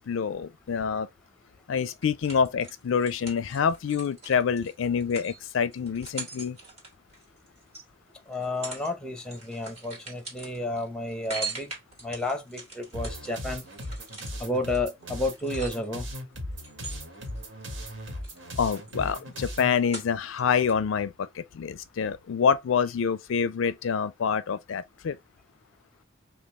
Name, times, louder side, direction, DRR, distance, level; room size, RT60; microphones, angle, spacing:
voice 1, 0.1-1.1 1.7-6.6 18.6-25.2, left 6 dB, 80° left, 0.4 m, -27 dB
sound 1, 2.0-7.8 8.3-8.9 9.2-16.1 16.6-17.9 18.2-20.4 20.7-20.8, right 3 dB, 35° right, 2.0 m, -42 dB
voice 2, 8.3-11.7 12.0-13.6 14.4-16.1, left 2 dB, 5° left, 0.9 m, -31 dB
sound 2, 12.9-19.7, equal, 65° right, 1.6 m, -37 dB
5.2 x 2.4 x 3.4 m
head